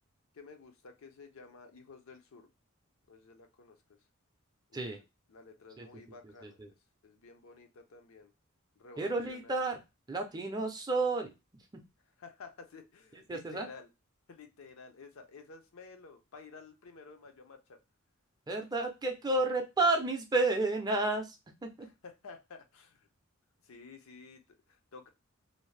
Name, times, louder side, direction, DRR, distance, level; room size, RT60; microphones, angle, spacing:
voice 1, 0.3-2.5 3.1-4.0 4.7-4.8 5.3-6.6 7.0-8.3 8.8-9.6 12.2-13.9 14.3-17.8 21.8-23.1 23.6-25.1, left 4 dB, 70° left, 6 dB, 0.5 m, -52 dB
voice 2, 9.0-9.8 10.1-11.3 11.7-11.8 13.3-13.7 18.5-21.4 21.6-21.9, right 2 dB, 20° right, 4 dB, 0.5 m, -31 dB
2.6 x 2.0 x 3.1 m, 0.24 s
head